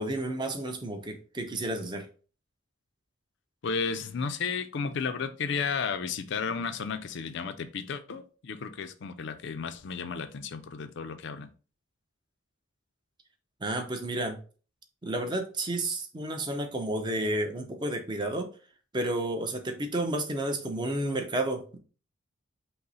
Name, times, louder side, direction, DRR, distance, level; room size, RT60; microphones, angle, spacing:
voice 1, 0.0-2.1 13.6-14.4 15.0-18.5 18.9-21.8, right 1 dB, 20° right, 0.6 m, -31 dB
voice 2, 3.6-11.5, left 5 dB, 60° left, 0.4 m, -33 dB
5.4 x 2.1 x 4.0 m
head